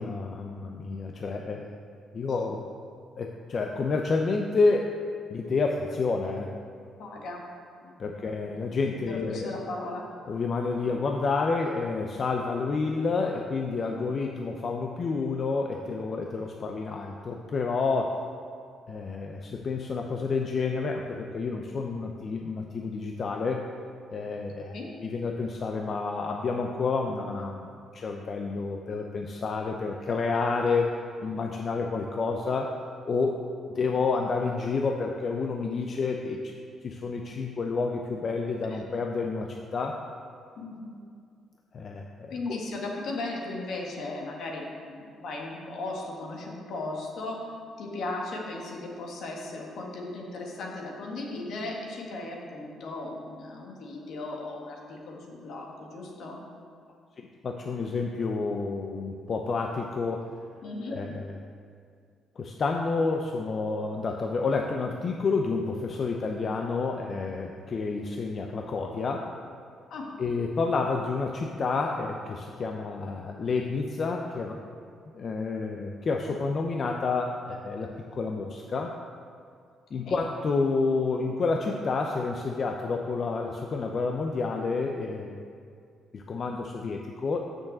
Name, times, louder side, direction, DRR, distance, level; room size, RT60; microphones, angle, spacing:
voice 1, 0.0-1.8 2.1-2.6 3.2-4.9 5.3-6.5 8.0-9.5 10.3-18.2 18.9-23.6 24.1-24.7 25.0-27.7 27.9-32.7 33.0-33.4 33.7-36.4 36.8-40.0 41.7-42.6 57.4-60.3 60.9-61.3 62.4-69.3 70.2-74.6 75.1-78.9 79.9-85.4 86.1-87.4, left 4 dB, 50° left, 2 dB, 0.6 m, -29 dB
voice 2, 7.0-7.4 7.8-8.0 8.9-10.1 24.6-24.9 38.7-38.8 40.6-41.0 42.3-47.5 47.8-56.4 60.6-61.0 69.9-70.1 80.1-80.2, left 2 dB, 70° left, -1 dB, 1.7 m, -37 dB
6.4 x 6.4 x 7.3 m, 2.2 s
cardioid pair, 90°, 0 cm